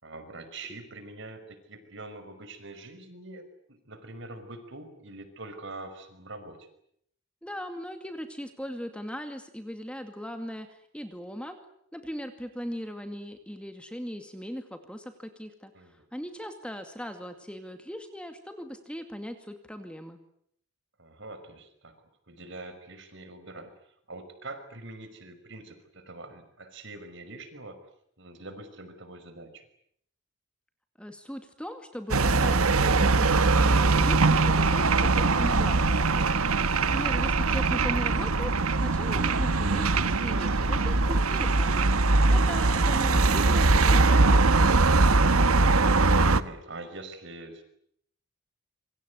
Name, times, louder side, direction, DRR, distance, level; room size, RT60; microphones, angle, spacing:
voice 1, 0.0-6.7 15.7-15.9 21.0-21.9 22.3-27.8 28.2-29.6 46.3-47.6, right 2 dB, 55° right, 10 dB, 5.6 m, -44 dB
voice 2, 7.4-11.6 11.9-15.7 16.1-20.2 31.0-45.4, equal, 5° left, 7 dB, 2.3 m, -39 dB
sound 1, 32.1-46.4, right 3 dB, 85° right, 1.3 m, -22 dB
27.5 x 25.0 x 8.2 m, 0.70 s
head